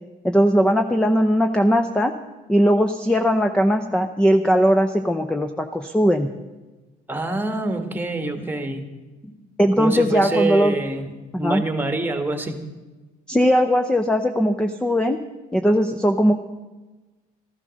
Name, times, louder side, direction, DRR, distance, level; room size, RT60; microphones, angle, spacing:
voice 1, 0.2-2.1 2.5-6.3 9.6-10.8 11.3-11.6 13.3-15.2 15.5-16.3, equal, 5° left, 7 dB, 0.7 m, -19 dB
voice 2, 7.1-8.8 9.8-11.1 11.4-12.6 15.7-15.8, right 2 dB, 10° right, 7 dB, 1.6 m, -25 dB
13.5 x 11.5 x 6.4 m, 1.2 s
cardioid pair, 110°, 17 cm